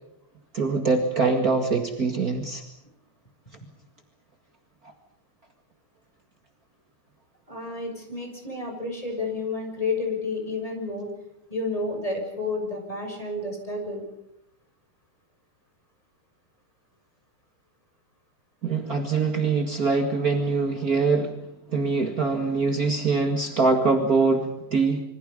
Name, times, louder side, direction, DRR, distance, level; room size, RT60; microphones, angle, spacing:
voice 1, 0.5-2.6 18.6-21.3 21.7-25.0, right 4 dB, 45° right, 4 dB, 1.1 m, -23 dB
voice 2, 7.5-11.1 11.5-14.0, left 3 dB, 10° left, 3 dB, 6.5 m, -30 dB
28.0 x 25.0 x 5.4 m, 0.84 s
omnidirectional pair, 5.0 m